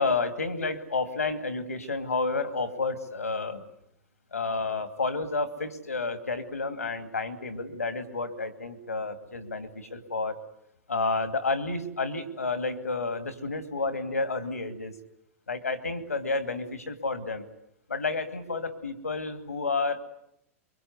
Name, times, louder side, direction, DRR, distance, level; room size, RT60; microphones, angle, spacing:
voice 1, 0.0-3.7 4.3-10.4 10.9-14.9 15.5-17.5 17.9-20.0, left 3 dB, 85° left, 10 dB, 2.7 m, -30 dB
24.0 x 23.5 x 9.7 m, 0.78 s
figure-of-eight pair, 95°, 8 cm